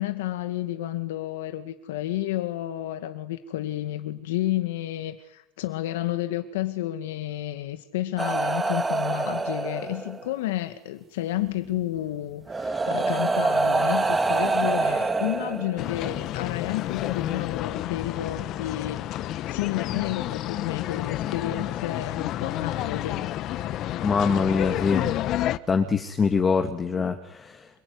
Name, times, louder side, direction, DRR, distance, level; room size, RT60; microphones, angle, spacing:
voice 1, 0.0-23.3, left 14 dB, 85° left, 2.0 m, -31 dB
sound 1, 8.2-10.3 11.6-11.8 12.5-16.1 17.2-17.3, right 3 dB, 15° right, 2.3 m, -25 dB
sound 2, 15.8-25.6, left 13 dB, 45° left, 1.2 m, -30 dB
voice 2, 24.0-25.1 25.7-27.7, left 5 dB, 20° left, 2.1 m, -24 dB
27.0 x 22.5 x 9.7 m
supercardioid pair, 140°, 0 cm